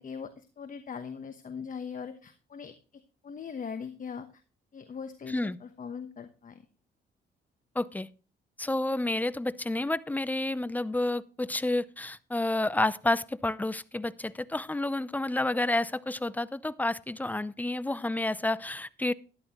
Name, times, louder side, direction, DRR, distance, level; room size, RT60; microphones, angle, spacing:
voice 1, 0.0-4.4 4.7-6.6, left 6 dB, 40° left, 8 dB, 1.1 m, -41 dB
voice 2, 5.3-5.6 7.8-8.1 8.6-19.1, left 2 dB, 10° left, 17 dB, 0.5 m, -30 dB
12.5 x 11.0 x 3.0 m, 0.36 s
cardioid pair, 90°, 20 cm